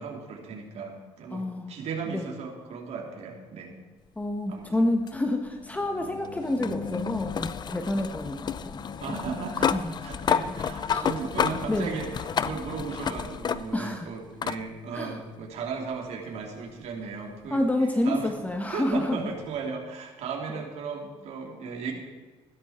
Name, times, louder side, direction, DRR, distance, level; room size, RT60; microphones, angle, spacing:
voice 1, 0.0-3.7 4.5-4.7 9.0-9.7 10.0-17.6 18.0-18.3 18.7-21.9, right 5 dB, 70° right, 1 dB, 3.3 m, -36 dB
voice 2, 1.3-1.7 2.1-2.3 4.2-8.8 9.7-9.9 10.9-11.1 11.7-11.9 13.7-14.1 14.9-15.2 17.5-19.2, left 1 dB, 15° left, 4 dB, 1.3 m, -28 dB
sound 1, 5.1-13.9 14.4-14.6 15.9-16.0 18.9-19.0, left 7 dB, 40° left, 0.6 m, -31 dB
15.5 x 12.5 x 4.4 m, 1.3 s
cardioid pair, 115°, 12 cm